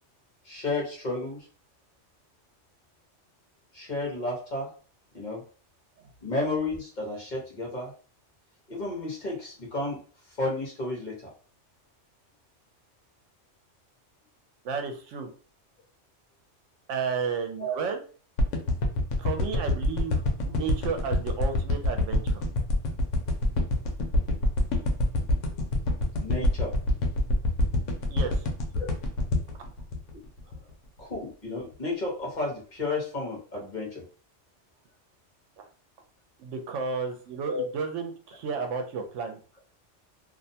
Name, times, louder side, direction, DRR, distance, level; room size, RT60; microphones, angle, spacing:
voice 1, 0.4-1.4 3.7-4.7 5.1-5.4 6.2-7.9 8.7-10.0 10.4-11.2 17.6-17.8 26.2-26.7 28.8-28.9 31.0-34.0 37.5-37.7, left 2 dB, 40° left, -3 dB, 1.0 m, -32 dB
voice 2, 14.6-15.3 16.9-18.0 19.2-22.4 28.1-28.4 35.6-35.7 36.4-39.4, right 5 dB, 80° right, 5 dB, 0.9 m, -32 dB
sound 1, 18.4-30.7 31.1-31.2, left 1 dB, 85° left, 1.0 m, -25 dB
2.5 x 2.1 x 2.7 m, 0.39 s
omnidirectional pair, 1.2 m